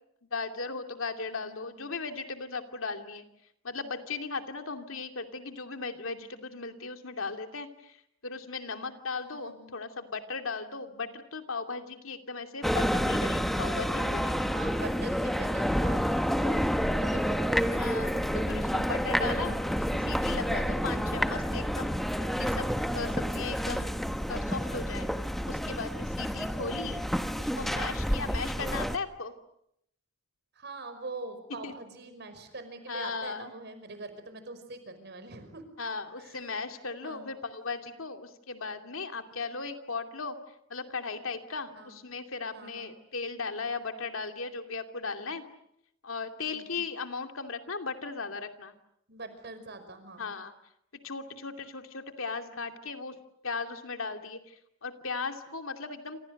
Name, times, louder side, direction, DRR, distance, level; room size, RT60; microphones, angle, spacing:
voice 1, 0.3-3.2 3.6-14.5 17.7-23.9 24.3-25.1 25.5-27.0 27.4-29.3 31.6-31.7 32.9-33.5 35.8-45.4 46.0-48.7 50.2-50.5 51.0-53.2 53.4-56.2, left 4 dB, 75° left, 6 dB, 2.7 m, -37 dB
voice 2, 1.3-1.9 9.2-9.7 14.3-16.6 16.9-17.9 20.7-21.0 30.5-35.7 36.2-36.5 37.0-37.3 39.3-39.4 41.7-42.0 42.5-42.9 46.4-46.8 49.1-50.3, right 3 dB, 55° right, 9 dB, 5.3 m, -44 dB
sound 1, 12.6-29.0, equal, ahead, 1.1 m, -29 dB
28.5 x 27.5 x 6.6 m, 0.76 s
head